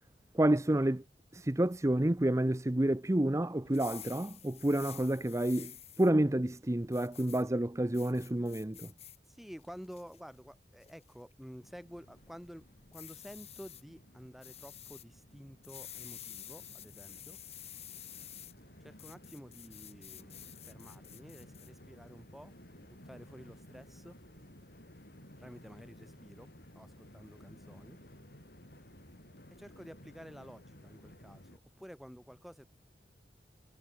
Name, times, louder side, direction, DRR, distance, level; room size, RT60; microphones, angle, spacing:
voice 1, 0.3-1.0 1.3-8.9, right 1 dB, 15° right, 0.7 m, -29 dB
sound 1, 3.7-6.1 6.9-7.4 7.9-9.2 9.6-10.2 10.8-11.1 12.9-13.8 14.4-15.0 15.6-18.5 19.0-21.7, left 11 dB, 35° left, 5.1 m, -50 dB
voice 2, 9.2-17.4 18.8-22.5 22.8-24.2 25.4-28.0 29.5-32.7, equal, ahead, 6.4 m, -51 dB
Train, 11.6-31.6, left 1 dB, 60° left, 6.6 m, -56 dB
head